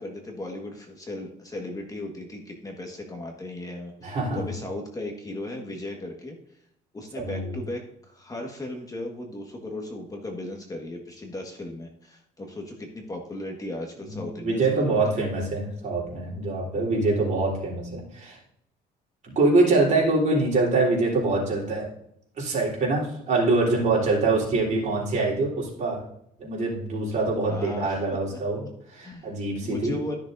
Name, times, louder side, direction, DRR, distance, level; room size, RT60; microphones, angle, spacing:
voice 1, 0.0-6.4 6.9-15.0 27.5-28.0 28.3-28.4 29.0-29.3 29.6-30.2, left 1 dB, 20° left, 1 dB, 1.5 m, -36 dB
voice 2, 4.0-4.5 7.1-7.5 14.0-18.4 19.4-21.9 22.4-26.0 26.4-30.0, right 3 dB, 45° right, -3 dB, 3.7 m, -24 dB
13.5 x 6.5 x 2.6 m, 0.74 s
cardioid pair, 110°, 17 cm